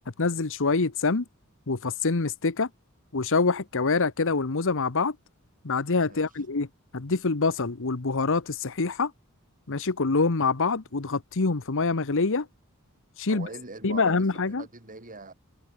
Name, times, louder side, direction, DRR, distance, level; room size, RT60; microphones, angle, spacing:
voice 1, 0.2-1.2 1.7-2.7 3.1-5.1 5.6-6.7 6.9-9.1 9.7-12.5 13.2-13.5 13.8-14.6, left 4 dB, 60° left, 1.1 m, -25 dB
voice 2, 13.3-15.3, right 3 dB, 40° right, 4.7 m, -43 dB
head